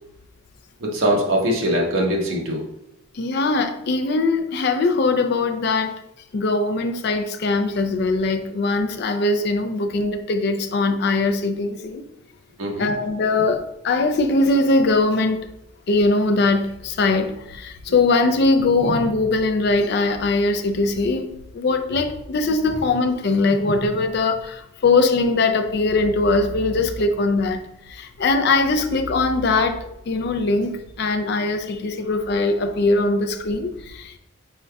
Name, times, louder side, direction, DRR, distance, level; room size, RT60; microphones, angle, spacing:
voice 1, 0.8-2.6 12.6-12.9, right 1 dB, 70° right, -1 dB, 0.9 m, -22 dB
voice 2, 3.1-6.0 6.3-12.0 12.8-15.5 15.9-34.2, left 3 dB, 50° left, 7 dB, 0.4 m, -21 dB
5.2 x 3.6 x 2.2 m, 0.83 s
head